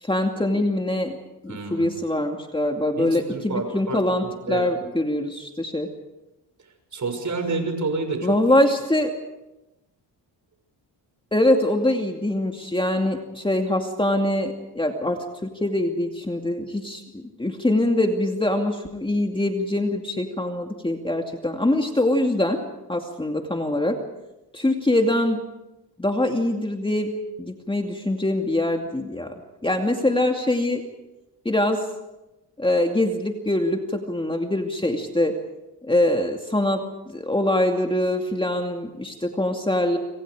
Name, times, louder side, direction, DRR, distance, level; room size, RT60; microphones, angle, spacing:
voice 1, 0.0-1.2 1.4-5.9 8.2-9.1 11.3-22.6 22.9-24.0 24.5-25.4 26.0-27.1 27.4-29.3 29.6-30.8 31.4-31.8 32.6-35.3 35.8-40.0, left 1 dB, 10° left, 3 dB, 2.4 m, -23 dB
voice 2, 1.5-1.9 3.0-4.7 6.9-8.4, right 3 dB, 45° right, 6 dB, 6.6 m, -29 dB
27.0 x 26.0 x 5.0 m, 0.96 s
cardioid pair, 90°, 42 cm